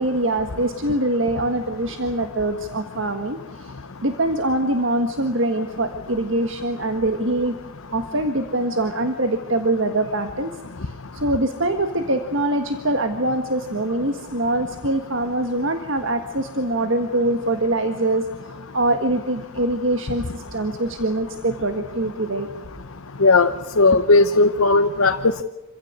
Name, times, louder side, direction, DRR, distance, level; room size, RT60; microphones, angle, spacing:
voice 1, 0.0-3.4 4.0-7.5 7.9-10.5 11.2-18.2 18.7-22.5, right 1 dB, 65° right, 7 dB, 1.6 m, -23 dB
voice 2, 23.2-23.5 23.8-25.4, left 3 dB, 85° left, 7 dB, 0.9 m, -16 dB
27.0 x 16.0 x 9.5 m, 1.1 s
head